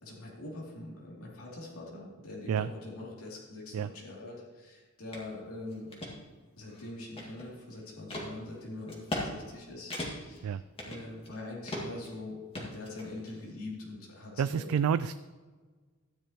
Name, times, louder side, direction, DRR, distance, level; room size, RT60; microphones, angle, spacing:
voice 1, 0.0-6.0 6.6-14.7, left 2 dB, 90° left, -4 dB, 2.8 m, -43 dB
sound 1, 5.1-5.3 5.7-6.1 6.7-7.6 8.1-8.3 8.9-9.3 9.5-9.6 9.9-10.4 10.8-11.4 11.7-12.1 12.5-13.3, left 1 dB, 25° left, 2.0 m, -38 dB
voice 2, 14.4-15.1, right 7 dB, 90° right, 14 dB, 0.3 m, -29 dB
13.5 x 10.0 x 3.0 m, 1.4 s
head